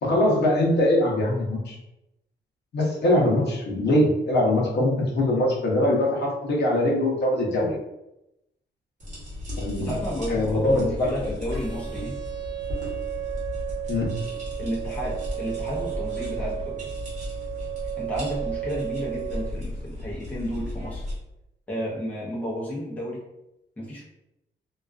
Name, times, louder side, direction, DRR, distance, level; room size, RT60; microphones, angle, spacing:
voice 1, 0.0-1.8 2.7-7.8 9.6-10.0 10.3-11.3 13.9-14.2, left 1 dB, 60° left, -4 dB, 0.7 m, -22 dB
sound 1, 9.0-21.1, left 1 dB, 40° right, 1.0 m, -35 dB
voice 2, 9.8-12.2 14.6-16.9 18.0-21.1 21.7-23.2 23.8-24.0, equal, 10° left, -6 dB, 0.5 m, -32 dB
sound 2, 11.5-19.5, right 15 dB, 85° right, 0.5 m, -34 dB
2.3 x 2.2 x 2.3 m, 0.88 s
wide cardioid pair, 160°, 20 cm